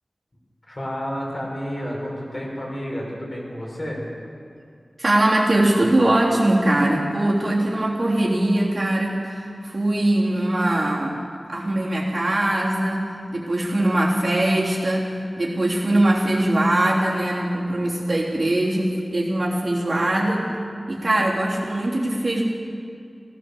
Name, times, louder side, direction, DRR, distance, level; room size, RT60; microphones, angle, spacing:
voice 1, 0.7-4.0, equal, 45° left, -4 dB, 5.3 m, -30 dB
voice 2, 5.0-11.2 11.5-20.5 20.9-22.4, right 1 dB, 55° right, -4 dB, 3.2 m, -21 dB
17.0 x 12.0 x 6.8 m, 2.4 s
wide cardioid pair, 50°, 0 cm